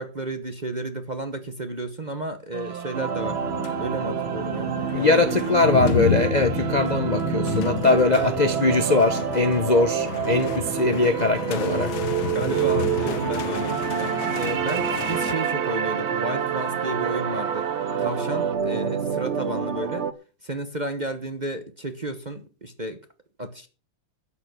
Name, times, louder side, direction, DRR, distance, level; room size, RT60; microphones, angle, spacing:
voice 1, 0.0-3.4 3.8-5.8 7.9-8.5 12.3-17.7 18.0-20.1 20.4-23.0 23.4-23.7, right 2 dB, 30° right, 0.9 m, -32 dB
sound 1, 2.5-18.6, right 8 dB, 75° right, 2.3 m, -34 dB
sound 2, 2.9-20.1, right 8 dB, 55° right, 0.7 m, -28 dB
sound 3, 3.0-15.3, left 10 dB, 65° left, 1.2 m, -32 dB
voice 2, 4.9-11.9, left 3 dB, 35° left, 0.6 m, -21 dB
12.5 x 9.1 x 6.2 m
omnidirectional pair, 2.2 m